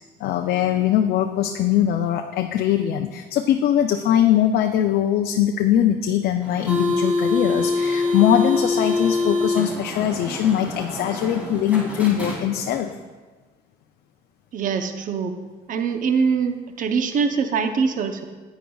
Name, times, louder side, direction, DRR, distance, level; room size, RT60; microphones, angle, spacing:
voice 1, 0.2-12.9, left 10 dB, 70° left, 6 dB, 0.5 m, -21 dB
sound 1, 6.4-12.9, left 3 dB, 10° right, 2.7 m, -25 dB
voice 2, 14.5-15.3 15.7-18.2, right 5 dB, 50° right, 7 dB, 0.7 m, -23 dB
10.0 x 9.1 x 2.3 m, 1.3 s
cardioid pair, 110°, 17 cm